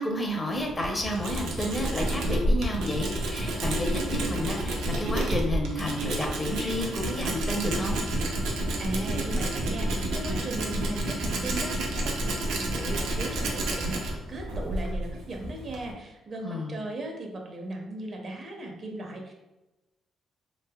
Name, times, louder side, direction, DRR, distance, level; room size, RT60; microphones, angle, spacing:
voice 1, 0.0-8.0 16.4-16.7, left 1 dB, 25° left, 1 dB, 0.7 m, -31 dB
Tools, 0.5-15.9, right 1 dB, 90° right, 0.6 m, -30 dB
voice 2, 8.8-19.3, right 2 dB, 45° right, 2 dB, 0.6 m, -37 dB
3.2 x 2.7 x 2.3 m, 1.0 s
cardioid pair, 90°, 0 cm